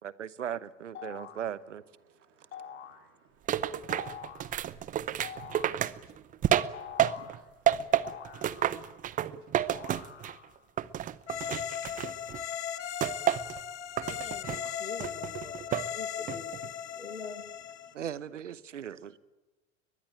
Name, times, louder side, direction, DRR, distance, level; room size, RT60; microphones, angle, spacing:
voice 1, 0.0-1.8 9.6-9.7 11.1-11.2 17.9-19.2, right 9 dB, 75° right, 1.0 m, -38 dB
sound 1, 0.9-1.5 2.5-3.1 3.9-4.5 5.2-5.8 6.7-7.4 8.0-9.0 9.7-10.6, left 8 dB, 30° left, 3.4 m, -45 dB
voice 2, 1.1-1.6 2.0-10.2 10.8-10.9 11.6-16.5 16.9-17.2 17.6-18.0 19.0-19.1, right 6 dB, 35° right, 3.4 m, -62 dB
sound 2, 3.5-7.4 7.7-10.5 10.8-12.4 13.0-13.6 14.0-14.6 15.0-15.9 16.3-16.7, right 11 dB, 20° right, 0.7 m, -30 dB
sound 3, 11.3-17.9, left 9 dB, 70° left, 2.0 m, -38 dB
voice 3, 11.7-12.1 14.1-17.6, left 4 dB, 85° left, 1.7 m, -45 dB
21.5 x 21.5 x 9.0 m
figure-of-eight pair, 85°, 37 cm